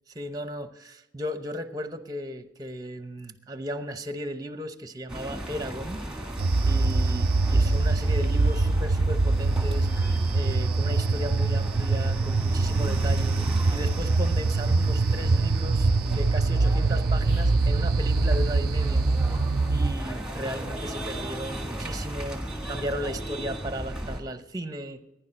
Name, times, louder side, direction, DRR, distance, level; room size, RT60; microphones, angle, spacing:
voice 1, 0.1-6.4 6.7-9.9 10.3-13.4 13.7-19.1 19.7-25.0, equal, 20° right, 9 dB, 0.8 m, -36 dB
sound 1, 5.1-24.2, right 1 dB, 5° right, 1.5 m, -35 dB
sound 2, 6.4-19.9, right 3 dB, 45° right, 0.5 m, -24 dB
15.5 x 10.5 x 5.2 m, 0.93 s
head